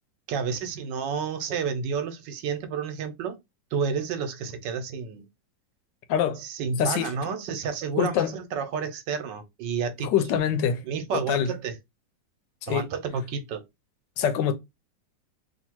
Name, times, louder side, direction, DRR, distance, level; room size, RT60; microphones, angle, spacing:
voice 1, 0.3-3.4 3.7-5.3 6.4-10.1 10.8-11.8 12.7-13.6, right 6 dB, 80° right, 1.4 m, -30 dB
voice 2, 6.1-6.4 6.8-7.1 8.0-8.4 10.0-10.8 11.1-11.5 12.6-12.9 14.2-14.5, left 8 dB, 85° left, 1.3 m, -24 dB
2.9 x 2.8 x 4.4 m
omnidirectional pair, 1.9 m